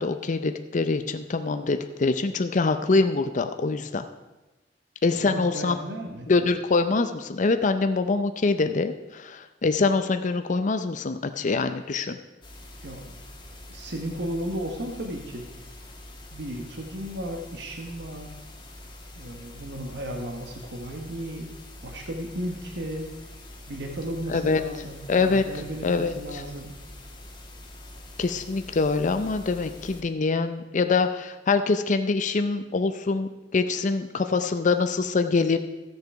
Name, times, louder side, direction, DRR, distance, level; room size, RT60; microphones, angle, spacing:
voice 1, 0.0-4.0 5.0-5.8 6.3-12.2 24.3-24.6 25.1-25.4 25.8-26.4 28.2-35.6, left 4 dB, 45° left, 8 dB, 0.5 m, -24 dB
voice 2, 5.1-6.3 12.8-13.2 13.7-15.6 16.3-18.4 19.2-21.5 21.8-23.1 23.7-26.7, right 1 dB, 65° right, 2 dB, 1.1 m, -34 dB
sound 1, 12.4-30.0, left 1 dB, 25° left, 1.4 m, -45 dB
14.5 x 6.8 x 4.7 m, 1.1 s
head